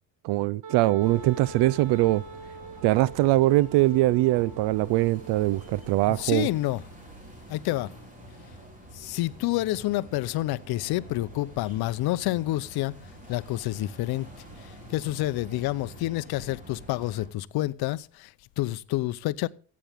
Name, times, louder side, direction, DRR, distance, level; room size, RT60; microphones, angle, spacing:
voice 1, 0.2-2.2 2.8-6.5, right 17 dB, 70° right, 0.6 m, -22 dB
Wind instrument woodwind instrument, 0.6-6.3, right 5 dB, 45° right, 2.1 m, -44 dB
sound 1, 1.0-17.3, equal, 20° right, 4.4 m, -47 dB
voice 2, 6.1-6.8 7.5-7.9 8.9-12.9 13.3-14.3 14.6-19.5, left 17 dB, 60° left, 0.7 m, -28 dB
14.5 x 8.7 x 3.5 m
cardioid pair, 105°, 43 cm